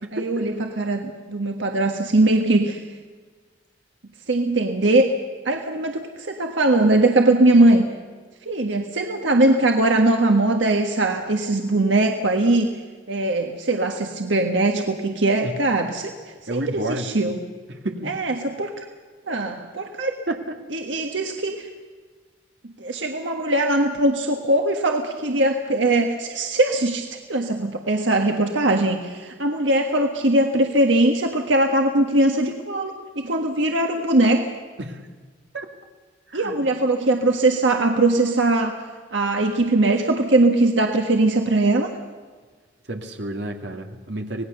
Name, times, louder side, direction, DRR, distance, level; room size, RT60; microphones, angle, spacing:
voice 1, 0.1-2.8 4.3-5.1 5.4-7.8 8.4-12.7 13.1-16.1 16.5-17.4 18.1-18.7 19.3-20.2 20.7-21.7 22.8-34.5 36.3-38.8 39.1-41.9, right 2 dB, 90° right, 3 dB, 1.6 m, -20 dB
voice 2, 16.5-17.1 17.7-18.2 20.3-20.4 34.8-35.0 35.5-35.7 36.3-36.6 42.9-44.5, right 1 dB, 70° right, 4 dB, 2.3 m, -30 dB
26.0 x 19.0 x 6.8 m, 1.5 s
head